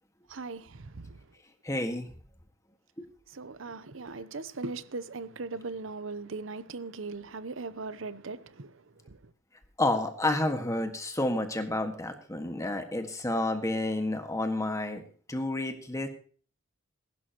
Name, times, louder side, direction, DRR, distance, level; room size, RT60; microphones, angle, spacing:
voice 1, 0.3-1.2 3.3-8.7 9.1-9.2, right 3 dB, 65° right, 0.8 m, -39 dB
voice 2, 1.6-2.1 9.8-16.1, left 2 dB, 15° left, 1.7 m, -30 dB
21.5 x 11.5 x 3.0 m
head